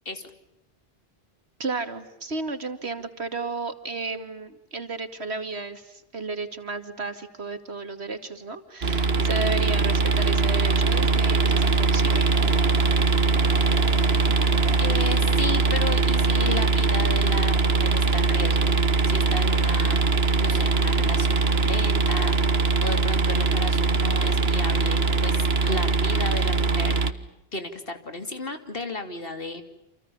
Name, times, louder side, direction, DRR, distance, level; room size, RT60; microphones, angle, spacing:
voice 1, 1.6-12.3, right 3 dB, 90° right, 8 dB, 2.6 m, -33 dB
sound 1, 8.8-27.1, right 4 dB, 75° right, 1.8 m, -21 dB
Train, 10.5-17.0 17.5-17.6 17.8-17.9, left 2 dB, 90° left, 2.8 m, -44 dB
voice 2, 14.8-18.8 19.0-20.0 20.4-27.0 27.5-29.6, left 2 dB, 60° left, 7 dB, 3.2 m, -34 dB
29.0 x 28.0 x 7.2 m, 0.85 s
omnidirectional pair, 1.1 m